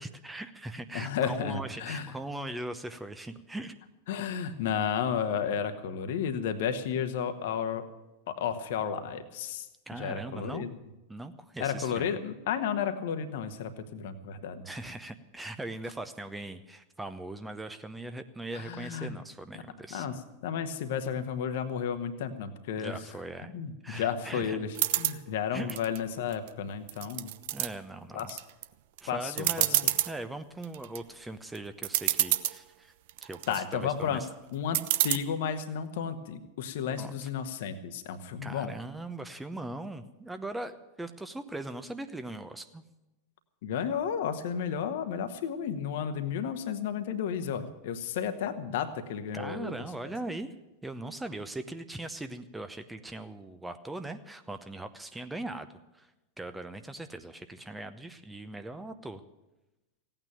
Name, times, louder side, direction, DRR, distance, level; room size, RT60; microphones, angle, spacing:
voice 1, 0.0-3.7 9.9-10.7 11.1-12.1 14.6-20.1 22.8-23.5 23.8-24.6 25.5-25.8 27.5-28.3 29.0-32.9 33.2-34.3 37.0-37.1 38.4-42.8 49.3-50.5 50.8-55.7 55.9-56.1 56.4-59.2, right 2 dB, 5° right, 9 dB, 0.8 m, -40 dB
voice 2, 0.9-2.2 4.1-7.8 8.3-10.7 11.6-14.7 18.5-19.2 19.9-23.0 23.5-27.3 28.1-28.4 29.1-29.9 33.5-34.3 34.5-38.7 43.6-49.9, left 7 dB, 55° left, 9 dB, 1.3 m, -33 dB
sound 1, 24.7-25.2 25.7-26.5 26.9-27.7 28.2-28.6 29.0-29.1 29.4-30.1 30.6-31.0 31.6-31.7 31.8-32.6 33.1-33.6 34.7-35.2, right 15 dB, 50° right, 0.6 m, -27 dB
16.0 x 9.0 x 9.0 m, 1.0 s
figure-of-eight pair, 90°, 0 cm